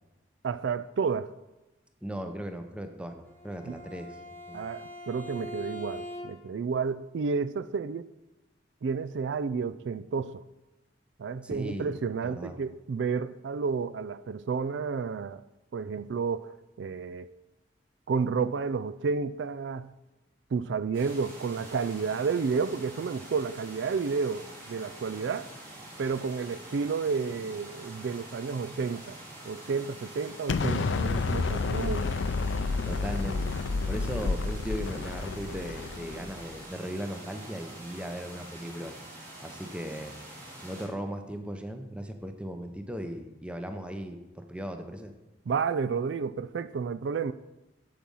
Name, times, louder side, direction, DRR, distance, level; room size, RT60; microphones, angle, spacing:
voice 1, 0.4-1.3 3.7-3.8 4.5-8.1 8.8-10.4 11.2-15.4 15.7-16.5 16.8-17.3 18.1-19.9 20.5-25.5 26.0-29.2 29.4-32.1 45.5-47.3, right 5 dB, 75° right, 0.4 m, -31 dB
voice 2, 2.0-4.2 4.5-4.6 11.4-11.9 12.2-12.6 32.9-39.0 39.4-40.2 40.6-45.1, equal, 5° right, 0.7 m, -37 dB
Bowed string instrument, 3.3-6.6, left 1 dB, 10° left, 1.2 m, -42 dB
sound 1, 20.9-40.9, right 1 dB, 50° right, 3.4 m, -46 dB
Explosion, 30.5-36.5, left 4 dB, 85° left, 0.5 m, -30 dB
8.6 x 7.6 x 5.4 m
head